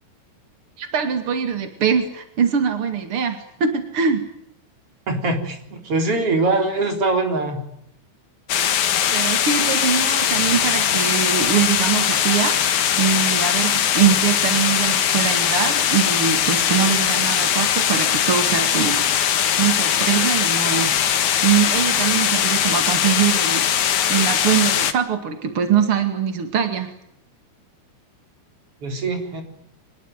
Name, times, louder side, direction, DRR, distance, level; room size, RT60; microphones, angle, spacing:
voice 1, 0.8-4.3 9.1-19.0 19.6-21.2 21.4-26.9, right 7 dB, 50° right, 7 dB, 1.7 m, -22 dB
voice 2, 5.1-7.6 28.8-29.4, right 2 dB, 30° right, 5 dB, 4.2 m, -22 dB
sound 1, 8.5-24.9, left 9 dB, 70° left, 1.8 m, -20 dB
25.5 x 21.0 x 9.2 m, 0.75 s
omnidirectional pair, 5.9 m